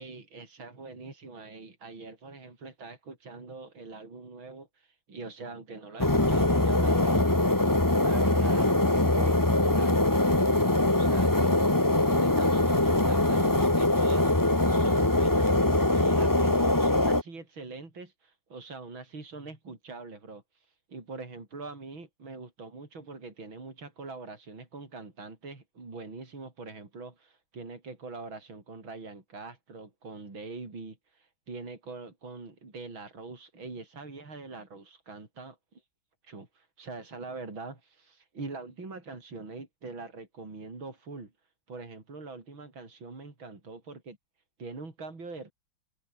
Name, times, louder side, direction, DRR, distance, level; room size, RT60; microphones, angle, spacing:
voice 1, 0.0-7.3 8.0-10.3 11.0-15.6 15.9-35.8 36.2-41.3 41.7-44.2 44.6-45.5, right 3 dB, 65° right, 5.9 m, -43 dB
sound 1, 6.0-17.2, left 1 dB, 10° left, 1.5 m, -23 dB
omnidirectional pair, 2.3 m